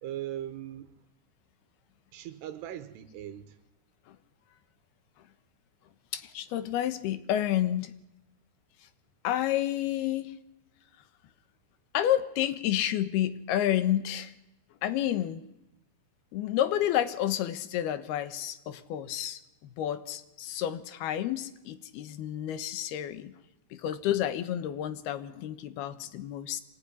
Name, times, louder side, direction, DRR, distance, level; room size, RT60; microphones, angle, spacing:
voice 1, 0.0-1.1 2.1-3.6, right 12 dB, 85° right, 8 dB, 3.2 m, -39 dB
voice 2, 6.1-7.9 9.2-10.3 11.9-14.3 14.8-15.4 16.3-23.3 23.7-26.6, left 12 dB, 75° left, 13 dB, 3.1 m, -30 dB
24.5 x 19.0 x 9.8 m, 0.93 s
omnidirectional pair, 4.7 m